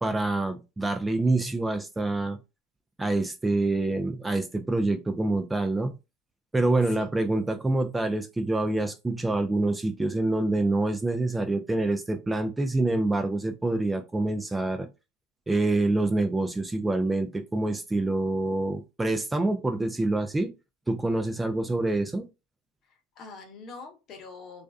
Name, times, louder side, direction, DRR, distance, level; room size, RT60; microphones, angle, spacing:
voice 1, 0.0-2.4 3.0-5.9 6.5-14.9 15.5-20.5 20.9-22.3, right 2 dB, 15° right, 0.4 m, -26 dB
voice 2, 22.9-24.6, left 4 dB, 50° left, 0.9 m, -44 dB
2.5 x 2.2 x 2.3 m
hypercardioid pair, 85°, 0 cm